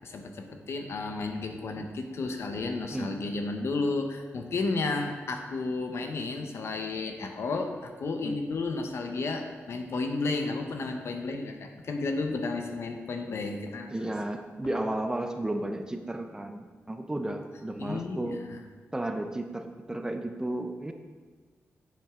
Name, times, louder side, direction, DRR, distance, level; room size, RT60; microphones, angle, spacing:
voice 1, 0.0-13.9 17.8-18.6, left 3 dB, 65° left, 4 dB, 0.9 m, -32 dB
voice 2, 13.9-18.4 18.9-20.9, right 1 dB, 15° right, 6 dB, 0.6 m, -33 dB
9.1 x 7.6 x 3.7 m, 1.4 s
wide cardioid pair, 120°, 5 cm